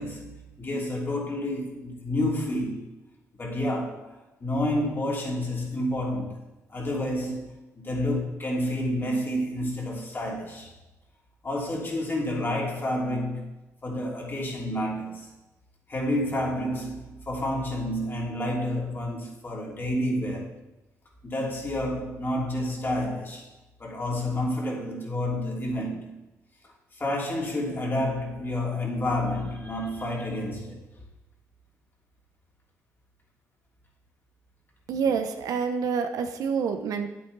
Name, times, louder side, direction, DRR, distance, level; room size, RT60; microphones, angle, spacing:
voice 1, 0.0-2.9 3.4-6.4 6.7-10.7 11.4-13.5 13.8-15.3 15.9-20.6 21.2-23.5 23.8-26.2 26.9-30.8, left 1 dB, 35° left, 3.2 m, -29 dB
voice 2, 34.9-37.1, right 6 dB, 85° right, 1.0 m, -27 dB
9.3 x 8.4 x 4.1 m
cardioid pair, 75°, 6 cm